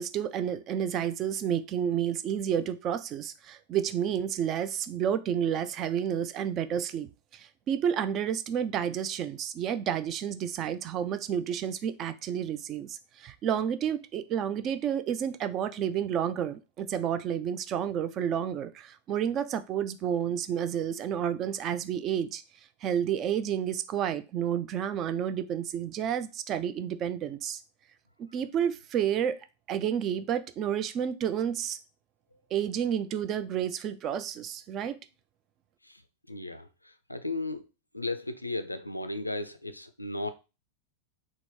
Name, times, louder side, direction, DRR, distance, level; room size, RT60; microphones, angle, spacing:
voice 1, 0.0-22.4 22.8-27.6 28.2-29.4 29.7-31.8 32.5-35.0, right 9 dB, 35° right, 0.3 m, -30 dB
voice 2, 36.3-37.7 37.9-40.3, left 2 dB, 85° left, 0.3 m, -35 dB
3.5 x 2.0 x 3.6 m
figure-of-eight pair, 90°, 0 cm